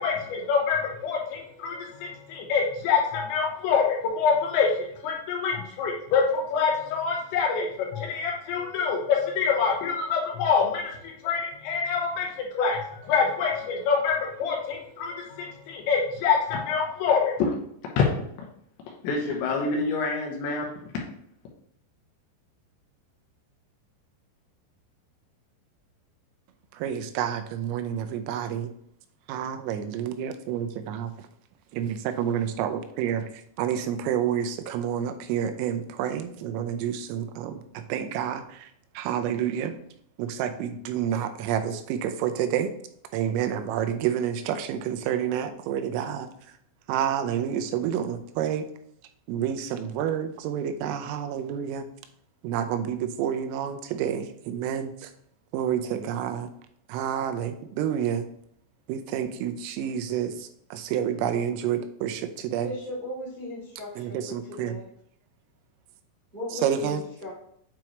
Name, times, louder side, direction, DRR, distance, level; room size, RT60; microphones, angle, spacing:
voice 1, 0.0-17.6 18.0-18.1 18.9-20.9, left 5 dB, 75° left, 2.9 m, -26 dB
voice 2, 26.7-28.7 29.3-31.1 31.7-33.3 33.6-38.7 39.0-39.7 40.2-42.7 43.1-46.3 46.9-48.7 49.3-51.9 52.4-55.1 55.5-56.5 56.9-58.3 58.9-62.7 64.0-64.8 66.5-67.0, right 9 dB, 85° right, 3.3 m, -29 dB
voice 3, 62.6-64.1 64.6-64.8 66.3-67.3, left 1 dB, 40° right, 0.6 m, -36 dB
8.9 x 4.5 x 3.0 m
omnidirectional pair, 5.9 m